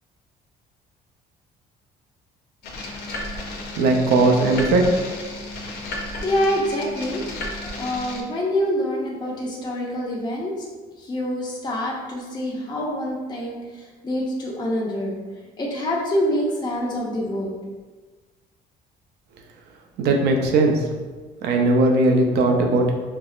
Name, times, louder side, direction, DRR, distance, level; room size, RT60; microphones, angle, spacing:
sound 1, 2.6-8.2, left 2 dB, 85° left, 0.7 m, -33 dB
voice 1, 3.8-4.9 20.0-20.8 21.4-22.9, right 2 dB, 75° right, 2 dB, 0.6 m, -18 dB
voice 2, 6.2-7.2 7.8-10.7 11.0-13.6 14.0-15.2 15.6-17.6, equal, 25° left, -4 dB, 0.7 m, -26 dB
5.4 x 2.0 x 2.4 m, 1.4 s
cardioid pair, 110°, 17 cm